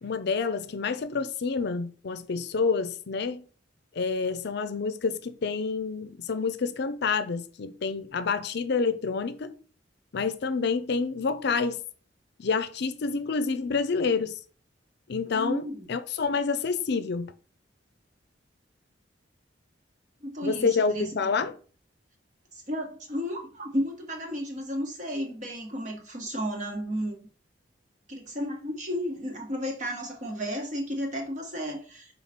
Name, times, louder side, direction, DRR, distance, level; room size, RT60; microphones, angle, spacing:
voice 1, 0.0-3.4 3.9-9.6 10.1-11.8 12.4-14.4 15.1-17.3 20.4-21.6, left 4 dB, 60° left, 0.5 m, -28 dB
voice 2, 15.3-15.9 20.2-21.1 22.5-27.2 28.1-32.1, equal, 40° right, 1.5 m, -33 dB
5.7 x 3.9 x 4.4 m
head